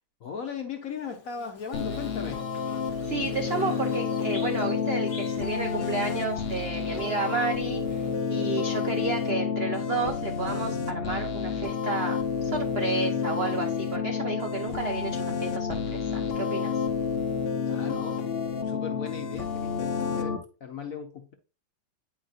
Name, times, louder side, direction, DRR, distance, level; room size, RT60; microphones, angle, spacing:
voice 1, 0.2-2.5 17.6-18.2 18.6-21.3, left 6 dB, 60° left, 0.9 m, -37 dB
Bird / Buzz, 0.9-8.6, left 4 dB, 35° left, 0.5 m, -46 dB
sound 1, 1.7-20.4, left 6 dB, 80° left, 0.5 m, -30 dB
voice 2, 3.1-16.7, right 4 dB, 80° right, 0.5 m, -32 dB
sound 2, 6.8-8.9, right 2 dB, 65° right, 1.3 m, -44 dB
9.0 x 4.6 x 2.4 m
omnidirectional pair, 2.1 m